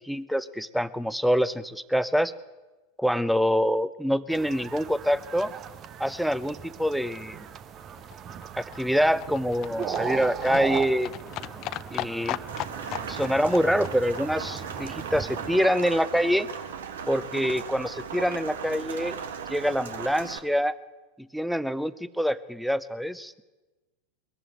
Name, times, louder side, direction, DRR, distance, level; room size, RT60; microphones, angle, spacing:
voice 1, 0.0-2.3 3.0-5.5 6.0-7.5 8.6-11.1 11.9-12.4 13.1-16.5 17.1-19.2 19.5-20.7 21.2-23.4, equal, ahead, 17 dB, 0.8 m, -25 dB
sound 1, 4.3-15.6, right 8 dB, 35° right, 1.0 m, -38 dB
Livestock farm animals working animals, 7.5-15.7 16.0-16.1 16.3-16.4 16.6-16.7 16.9-17.0 17.2-17.3 17.5-17.6 17.8-17.9 18.2-18.3, left 16 dB, 45° left, 0.6 m, -39 dB
Rain, 12.5-20.4, right 6 dB, 65° right, 1.7 m, -37 dB
21.5 x 14.0 x 9.1 m, 1.2 s
figure-of-eight pair, 85°, 0 cm